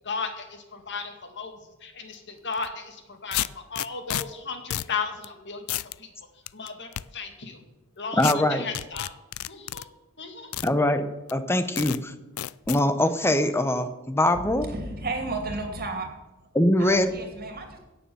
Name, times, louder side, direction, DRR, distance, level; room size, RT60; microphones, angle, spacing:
voice 1, 0.0-6.1 6.5-7.6 8.0-9.1 9.5-9.9 10.2-10.5, left 5 dB, 55° left, 5 dB, 2.1 m, -35 dB
sound 1, 2.5-2.7 3.3-4.2 4.7-4.9 5.2-5.3 5.7-6.0 6.5-7.0 8.2-8.3 8.7-9.8 10.5-10.7 11.3-11.4 11.8-12.0 12.4-12.8, left 13 dB, 70° left, 0.4 m, -30 dB
voice 2, 8.1-8.7 10.6-12.1 12.7-14.7 16.5-17.1, left 1 dB, 10° left, 10 dB, 0.9 m, -23 dB
voice 3, 14.3-16.1 16.8-17.8, right 2 dB, 45° right, 4 dB, 2.6 m, -33 dB
16.5 x 7.0 x 7.0 m, 1.0 s
head